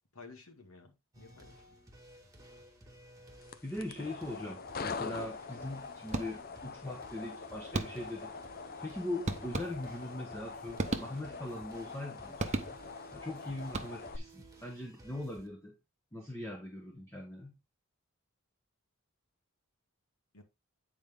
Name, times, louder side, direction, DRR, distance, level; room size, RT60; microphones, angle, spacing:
voice 1, 0.1-1.8 20.3-20.4, left 3 dB, 80° left, 1.9 m, -54 dB
sound 1, 1.1-15.5, right 2 dB, 15° right, 1.8 m, -56 dB
sound 2, 3.4-14.2, left 4 dB, 45° left, 0.6 m, -44 dB
voice 2, 3.6-8.3 8.8-12.8 13.1-15.8 16.1-17.6, left 1 dB, 10° left, 1.2 m, -41 dB
sound 3, 6.1-6.7 7.7-8.3 9.3-10.1 10.8-11.5 12.4-13.1 13.6-14.3, right 2 dB, 35° right, 0.9 m, -37 dB
9.1 x 4.6 x 3.6 m
head